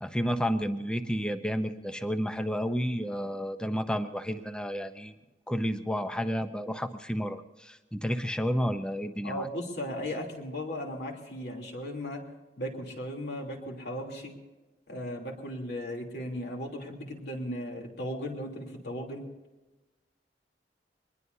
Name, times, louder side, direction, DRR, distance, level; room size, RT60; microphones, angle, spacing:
voice 1, 0.0-5.1 5.5-9.5, equal, 5° left, 8 dB, 0.7 m, -31 dB
voice 2, 9.2-12.2 12.6-14.3 14.9-19.3, equal, 65° left, 0 dB, 3.2 m, -36 dB
24.0 x 20.5 x 2.8 m, 1.1 s
head